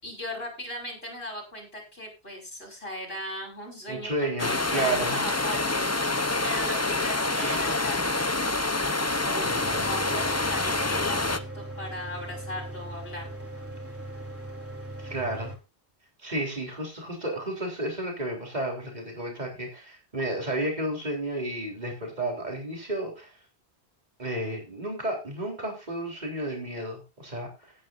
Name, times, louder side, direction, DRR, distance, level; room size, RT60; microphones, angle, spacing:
voice 1, 0.0-4.1 4.4-5.9 6.4-8.2 9.2-13.2, left 1 dB, 65° left, -2 dB, 5.9 m, -38 dB
voice 2, 3.9-5.2 9.4-9.8 15.0-15.5 16.2-23.3 24.2-27.7, right 1 dB, 40° right, 0 dB, 4.1 m, -32 dB
sound 1, 4.4-11.4, left 2 dB, 15° left, 0.7 m, -27 dB
Mechanical fan, 9.6-15.6, right 1 dB, 10° right, 3.5 m, -39 dB
18.0 x 9.6 x 2.6 m, 0.27 s
omnidirectional pair, 1.1 m